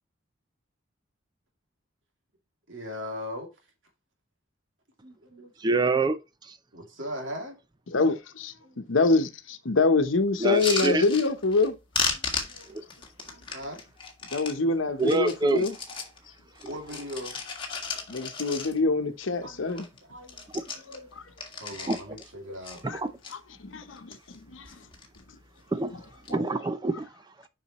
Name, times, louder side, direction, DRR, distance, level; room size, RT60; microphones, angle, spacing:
voice 1, 2.7-3.5 5.0-5.8 6.7-7.6 8.6-8.9 12.1-12.8 13.3-13.8 16.7-17.4 19.4-21.1 21.6-22.8, equal, 80° right, 2.5 m, -40 dB
voice 2, 5.6-6.2 10.4-11.1 15.0-15.6 21.9-22.0 23.0-23.1 25.7-25.9 26.3-27.0, right 2 dB, 20° right, 0.5 m, -25 dB
voice 3, 7.9-11.8 14.3-15.8 18.1-19.9 20.9-21.2 22.9-23.0 23.3-24.7, left 3 dB, 80° left, 0.9 m, -26 dB
sound 1, 10.4-11.7 11.9-14.6 15.0-16.2 16.5-19.0 19.4-19.5 19.7-20.0 20.2-22.3 22.6-23.3 23.9-24.4 24.6-25.2 26.0-26.3, left 5 dB, 25° left, 1.8 m, -35 dB
7.1 x 5.6 x 3.0 m
head